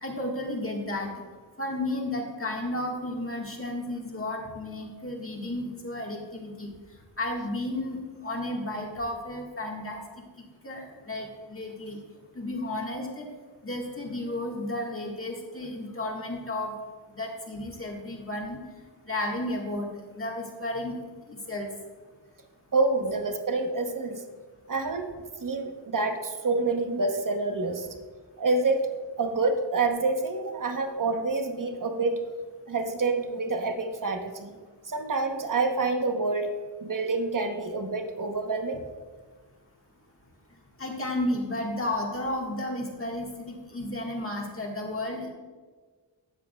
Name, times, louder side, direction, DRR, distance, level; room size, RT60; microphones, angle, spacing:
voice 1, 0.0-1.1 1.6-6.7 7.2-10.2 10.6-12.0 12.3-13.3 13.6-16.8 17.1-18.6 19.1-19.9 20.1-21.0 21.3-21.7 40.8-45.3, left 1 dB, 30° left, -1 dB, 1.7 m, -33 dB
voice 2, 22.7-24.2 24.7-25.1 25.4-27.9 28.4-28.9 29.2-32.2 32.7-34.6 34.9-36.5 36.8-38.8, right 3 dB, 45° right, 5 dB, 1.0 m, -27 dB
12.5 x 7.7 x 2.3 m, 1.4 s
wide cardioid pair, 90°, 45 cm